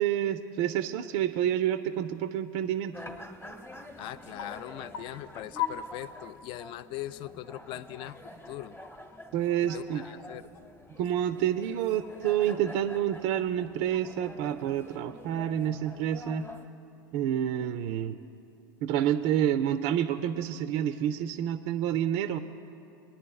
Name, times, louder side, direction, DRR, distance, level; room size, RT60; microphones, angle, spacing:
voice 1, 0.0-2.9 9.3-10.0 11.0-16.5 17.1-18.2 18.8-22.4, right 10 dB, 55° right, 9 dB, 0.4 m, -28 dB
sound 1, 1.7-1.8 2.2-2.3 2.6-2.7 2.9-3.2 3.5-6.6 7.0-7.1 7.4-11.0 11.4-13.0 13.4-14.4 14.8-17.2 17.7-17.8 18.7-19.1, left 10 dB, 65° left, 0.8 m, -43 dB
sound 2, 2.9-16.7, left 1 dB, 20° left, 0.9 m, -48 dB
voice 2, 4.0-8.2 8.5-8.8 9.7-10.5, left 13 dB, 45° left, 15 dB, 0.4 m, -40 dB
21.5 x 10.0 x 2.3 m, 2.8 s
hypercardioid pair, 100°, 12 cm